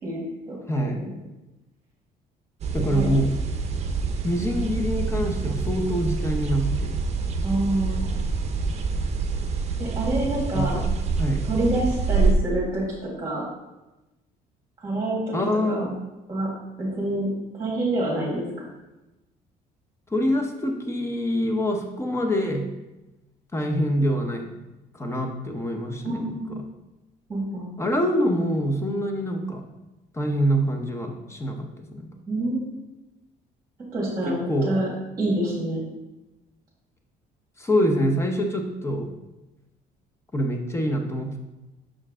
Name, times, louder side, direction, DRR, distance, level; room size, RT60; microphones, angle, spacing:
voice 1, 0.0-0.6 1.0-1.1 2.8-3.1 7.4-8.2 9.8-10.8 11.4-13.4 14.8-15.4 15.7-15.8 16.3-16.5 16.8-17.3 17.6-18.5 26.0-26.6 27.3-27.7 32.3-32.7 33.9-34.9 35.2-35.8, right 1 dB, 20° right, -5 dB, 1.9 m, -27 dB
voice 2, 0.7-1.1 2.7-3.3 4.2-6.9 10.5-10.8 11.2-11.4 15.3-15.9 20.1-22.7 23.5-24.5 25.0-26.3 27.8-29.6 30.1-32.1 34.3-34.7 37.6-39.1 40.3-41.4, equal, 15° left, 4 dB, 0.9 m, -25 dB
sound 1, 2.6-12.3, right 4 dB, 40° right, 0.7 m, -26 dB
6.2 x 4.5 x 3.7 m, 1.0 s
cardioid pair, 110°, 17 cm